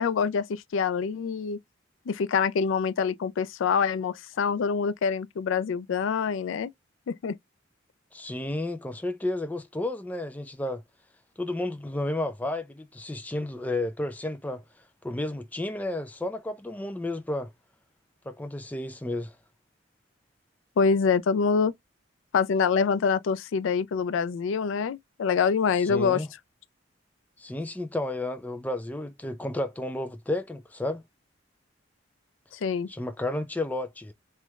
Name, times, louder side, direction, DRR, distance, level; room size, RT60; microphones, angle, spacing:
voice 1, 0.0-1.6 2.1-6.7 7.1-7.4 20.8-21.7 22.3-26.2 32.6-32.9, left 6 dB, 90° left, 0.4 m, -25 dB
voice 2, 8.1-10.8 11.4-14.6 15.0-17.5 18.3-19.4 25.8-26.3 27.4-31.0 32.9-34.1, left 1 dB, 10° left, 0.3 m, -32 dB
3.1 x 3.1 x 2.2 m
head